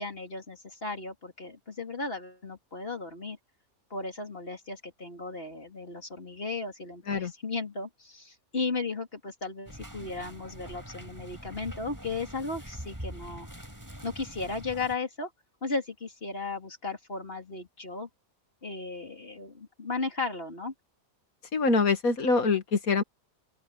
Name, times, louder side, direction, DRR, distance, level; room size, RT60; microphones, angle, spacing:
voice 1, 0.0-3.4 3.9-13.5 14.0-15.3 15.6-18.1 18.6-20.7, left 3 dB, 40° left, 3.5 m, -35 dB
sound 1, 9.7-15.0, equal, 10° right, 5.9 m, -44 dB
voice 2, 21.5-23.0, left 4 dB, 80° left, 2.4 m, -24 dB
open air
omnidirectional pair, 1.5 m